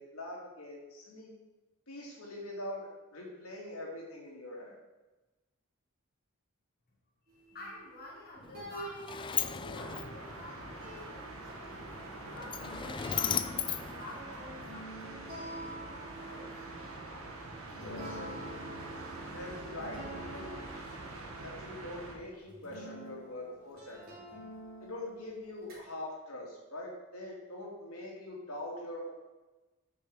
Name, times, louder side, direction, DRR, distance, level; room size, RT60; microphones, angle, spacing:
voice 1, 0.0-1.3 1.9-4.7 17.7-18.5 19.3-20.5 21.4-24.1 24.8-29.1, left 1 dB, 75° left, -2 dB, 2.5 m, -43 dB
voice 2, 7.3-16.5, left 2 dB, 45° left, -4 dB, 1.5 m, -51 dB
sound 1, 7.3-10.5 10.8-21.1 21.9-22.0 22.4-25.8, right 1 dB, 45° right, 3.2 m, -48 dB
Sliding door, 8.4-14.8, left 8 dB, 20° left, 0.3 m, -38 dB
sound 2, 9.7-22.1, right 2 dB, 65° right, 1.6 m, -45 dB
8.6 x 6.6 x 4.9 m, 1.1 s
head